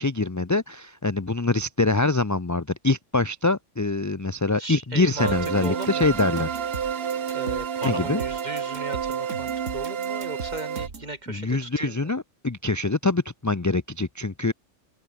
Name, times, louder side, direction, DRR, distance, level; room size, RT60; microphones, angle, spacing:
voice 1, 0.0-6.6 7.8-8.2 11.3-14.5, left 3 dB, 20° left, 0.5 m, -24 dB
voice 2, 4.6-6.2 7.3-12.1, right 2 dB, 35° right, 3.0 m, -37 dB
sound 1, 5.2-10.9, right 8 dB, 55° right, 1.1 m, -29 dB
sound 2, 5.3-11.1, right 4 dB, 80° right, 3.0 m, -38 dB
open air
omnidirectional pair, 1.3 m